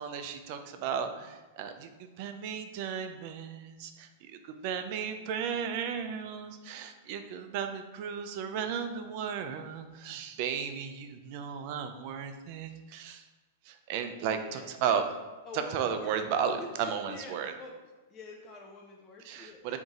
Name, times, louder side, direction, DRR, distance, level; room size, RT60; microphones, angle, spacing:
voice 1, 0.0-13.2 13.7-15.0 15.5-17.5 19.2-19.8, right 7 dB, 55° right, 7 dB, 0.4 m, -34 dB
voice 2, 14.2-15.0 15.5-16.2 16.6-17.7 18.1-19.6, left 3 dB, 30° left, 0 dB, 0.4 m, -46 dB
3.8 x 2.6 x 3.6 m, 1.2 s
hypercardioid pair, 110°, 0 cm